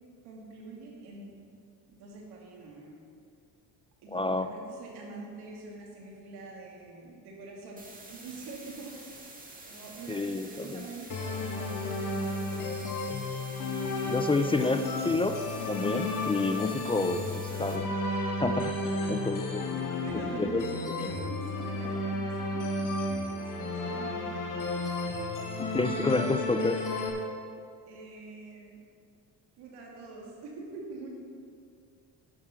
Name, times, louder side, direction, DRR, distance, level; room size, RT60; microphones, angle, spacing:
voice 1, 0.2-1.4 1.9-3.0 4.0-9.0 9.7-12.9 14.4-14.6 18.9-24.4 24.7-25.8 27.9-28.8 29.6-31.1, right 3 dB, 90° right, -2 dB, 2.5 m, -45 dB
voice 2, 4.1-4.5 10.1-10.8 14.1-17.9 18.4-18.8 19.1-19.6 20.4-20.6 25.7-26.8, left 3 dB, 15° left, 8 dB, 0.4 m, -29 dB
sound 1, 7.8-17.8, right 2 dB, 20° right, 1.7 m, -48 dB
sound 2, 11.1-27.1, left 2 dB, 50° left, 1.7 m, -33 dB
10.5 x 6.6 x 5.8 m, 2.3 s
cardioid pair, 100°, 39 cm